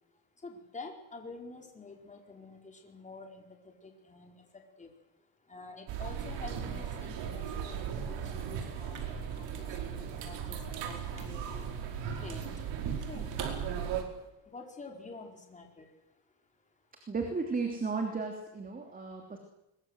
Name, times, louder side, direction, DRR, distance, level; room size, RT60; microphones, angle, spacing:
voice 1, 0.4-3.4 3.8-4.3 4.8-4.9 5.5-10.6 10.8-11.7 12.2-12.4 13.1-13.3 14.5-15.9, left 3 dB, 15° left, 2 dB, 4.6 m, -48 dB
sound 1, 5.9-14.0, right 8 dB, 75° right, 4.9 m, -37 dB
sound 2, 8.8-14.3, right 6 dB, 45° right, 4.7 m, -46 dB
voice 2, 17.1-19.4, right 4 dB, 20° right, 3 dB, 3.1 m, -34 dB
23.0 x 22.5 x 8.0 m, 0.91 s
cardioid pair, 145°, 44 cm